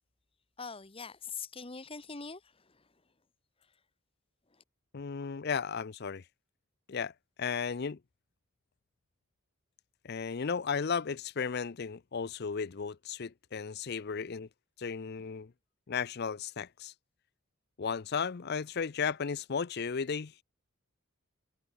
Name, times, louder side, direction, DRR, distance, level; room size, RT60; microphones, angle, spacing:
voice 1, 0.6-2.8, left 5 dB, 25° left, 1.2 m, -43 dB
voice 2, 4.9-6.2 6.9-7.1 7.4-8.0 10.0-14.5 14.8-15.5 15.9-16.9 17.8-20.4, left 6 dB, 45° left, 0.5 m, -34 dB
head